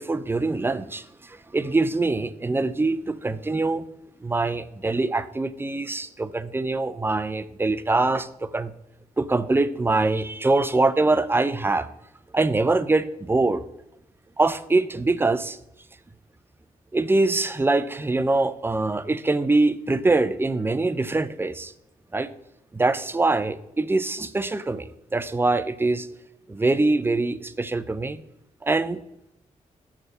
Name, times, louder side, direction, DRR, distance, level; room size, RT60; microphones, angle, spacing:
voice 1, 0.0-3.8 4.2-8.7 9.2-11.9 12.3-13.6 14.4-15.6 16.9-21.7 22.1-22.3 22.7-26.1 26.5-28.2 28.6-29.0, right 2 dB, 15° right, 14 dB, 0.4 m, -23 dB
6.4 x 4.8 x 5.5 m, 0.84 s
wide cardioid pair, 105°, 14 cm